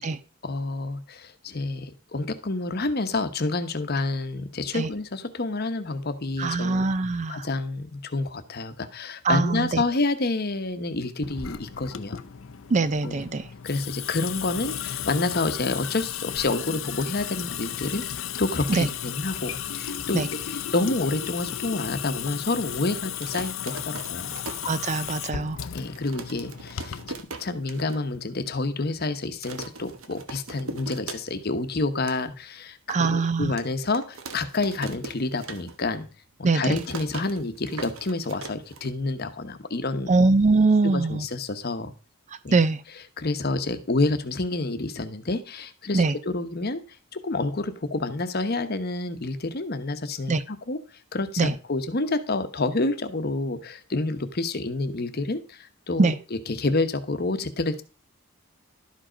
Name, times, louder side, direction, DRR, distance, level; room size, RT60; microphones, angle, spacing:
voice 1, 0.4-6.9 7.3-12.2 13.0-13.3 13.6-24.4 25.7-27.0 27.4-36.1 36.4-40.2 40.8-41.9 42.4-42.6 43.2-46.8 47.1-50.8 51.1-56.1 56.5-57.8, left 2 dB, 45° left, 9 dB, 0.9 m, -28 dB
voice 2, 6.4-7.5 9.2-9.8 12.7-13.5 18.7-18.9 20.1-20.3 24.7-25.6 32.9-33.5 36.4-36.8 40.1-41.2 42.5-42.8 45.9-46.2 50.3-50.4 51.4-51.5 56.0-56.2, right 3 dB, 35° right, 14 dB, 0.4 m, -22 dB
Water tap faucet / Sink (filling or washing) / Drip, 11.2-27.2, left 9 dB, 65° left, 0.6 m, -34 dB
sound 1, 23.2-25.3 25.7-25.8 25.9-28.0 28.4-28.5 28.7-29.0 29.4-31.6 31.9-32.2 32.7-32.8 33.6-36.0 36.3-39.2, right 3 dB, 70° right, 1.1 m, -40 dB
12.0 x 5.1 x 5.0 m, 0.34 s
head